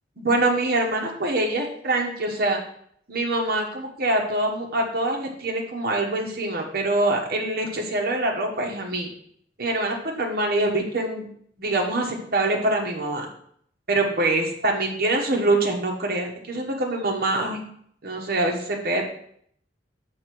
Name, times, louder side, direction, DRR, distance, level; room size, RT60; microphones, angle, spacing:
voice 1, 0.2-2.6 3.1-9.1 9.6-11.3 11.6-13.3 13.9-17.6 18.0-19.1, right 2 dB, 55° right, 1 dB, 1.3 m, -24 dB
6.5 x 3.6 x 6.0 m, 0.65 s
head